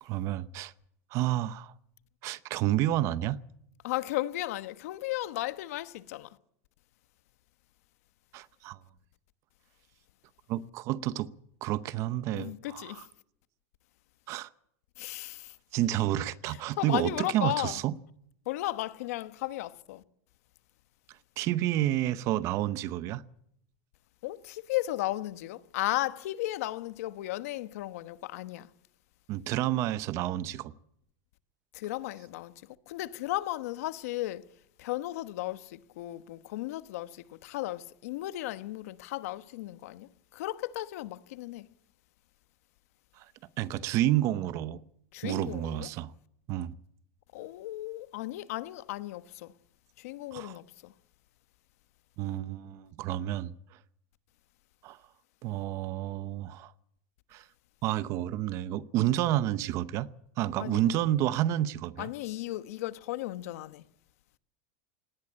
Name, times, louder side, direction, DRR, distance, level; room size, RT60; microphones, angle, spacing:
voice 1, 0.0-0.7 1.1-1.7 2.2-3.4 8.3-8.8 10.5-11.3 11.6-13.0 14.3-14.5 15.7-18.0 21.4-23.2 29.3-30.7 43.2-43.3 43.6-44.8 45.2-46.1 46.5-46.8 50.3-50.6 52.2-53.5 54.8-55.0 55.4-56.7 57.3-57.4 57.8-60.1 60.4-62.1, right 13 dB, 35° right, 0.8 m, -30 dB
voice 2, 3.8-6.3 12.3-13.1 15.0-15.5 16.5-17.8 18.5-20.0 24.2-28.7 31.7-32.5 32.9-34.4 34.8-41.7 45.1-45.9 47.3-49.5 50.0-50.9 60.6-60.8 62.0-63.8, left 16 dB, 70° left, 1.1 m, -35 dB
19.0 x 17.5 x 8.7 m
supercardioid pair, 165°, 8 cm